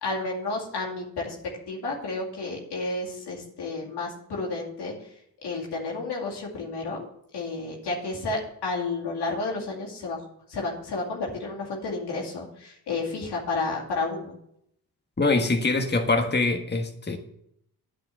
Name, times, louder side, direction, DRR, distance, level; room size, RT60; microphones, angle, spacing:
voice 1, 0.0-1.3 1.7-4.9 5.4-7.1 7.3-10.2 10.5-14.3, left 3 dB, 85° left, -2 dB, 2.4 m, -31 dB
voice 2, 15.2-17.2, left 3 dB, 25° left, 5 dB, 1.4 m, -24 dB
9.4 x 5.1 x 7.5 m, 0.73 s
supercardioid pair, 45°, 39 cm